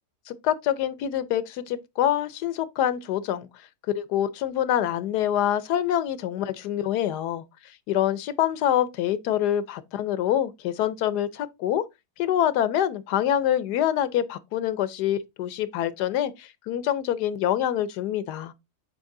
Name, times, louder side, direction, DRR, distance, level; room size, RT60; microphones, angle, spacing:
voice 1, 0.3-3.7 3.9-7.4 7.9-11.8 12.2-18.5, left 11 dB, 85° left, 1.3 m, -26 dB
8.0 x 3.6 x 3.7 m
omnidirectional pair, 1.7 m